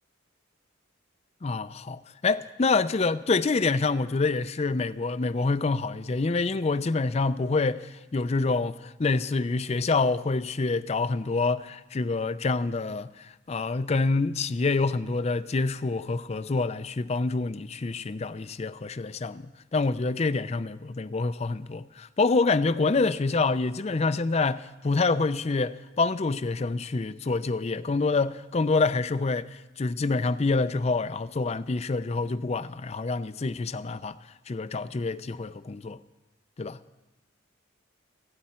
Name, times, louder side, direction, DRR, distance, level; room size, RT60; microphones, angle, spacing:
voice 1, 1.4-19.4 19.7-34.2 34.5-36.0 36.6-36.8, left 3 dB, 35° left, 0.4 m, -27 dB
28.0 x 9.6 x 4.4 m
head